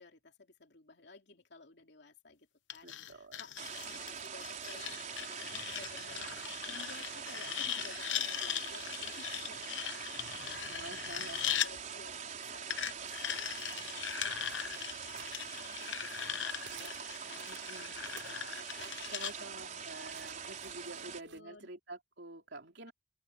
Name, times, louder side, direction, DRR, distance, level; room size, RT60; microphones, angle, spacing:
voice 1, 0.0-2.5 2.7-14.5 14.8-19.0 19.4-21.7, left 3 dB, 65° left, 3.0 m, -56 dB
sound 1, 2.7-11.7 12.7-19.3, left 10 dB, 80° left, 0.9 m, -39 dB
voice 2, 2.8-3.4 10.7-11.6 17.5-18.1 19.1-22.9, right 2 dB, 65° right, 3.9 m, -48 dB
sound 2, 3.6-21.2, right 7 dB, 45° right, 4.2 m, -44 dB
sound 3, 13.5-16.3 16.6-21.4, right 8 dB, 90° right, 6.2 m, -57 dB
open air
head